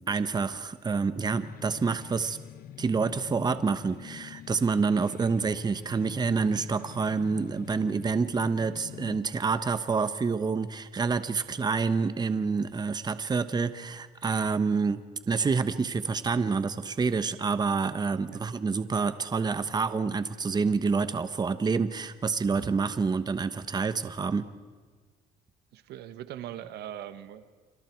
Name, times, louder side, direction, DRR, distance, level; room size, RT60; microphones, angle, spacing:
voice 1, 0.1-2.4 2.8-15.0 15.3-24.4, right 4 dB, 25° right, 12 dB, 1.1 m, -28 dB
sound 1, 1.2-9.2, left 11 dB, 60° left, 1.0 m, -46 dB
voice 2, 25.7-27.6, right 11 dB, 75° right, 12 dB, 1.3 m, -41 dB
29.5 x 26.0 x 4.6 m, 1.5 s
cardioid pair, 110°, 17 cm